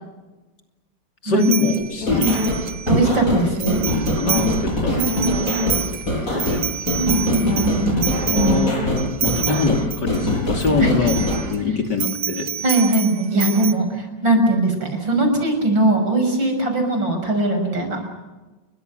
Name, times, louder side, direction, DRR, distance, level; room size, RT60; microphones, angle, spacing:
voice 1, 1.2-2.5 3.9-5.7 6.3-6.6 8.2-12.5, left 4 dB, 65° left, 4 dB, 3.4 m, -23 dB
sound 1, 1.4-3.2 3.6-4.6 4.9-10.7 11.0-11.6 12.0-13.7, right 8 dB, 60° right, 1.6 m, -28 dB
sound 2, 2.0-11.4, left 1 dB, 45° left, 6.8 m, -23 dB
voice 2, 2.9-3.8 4.9-5.7 7.0-8.0 8.3-8.7 10.8-11.1 12.6-18.1, right 2 dB, 85° right, 4 dB, 6.9 m, -20 dB
29.5 x 23.0 x 6.8 m, 1.2 s
omnidirectional pair, 2.0 m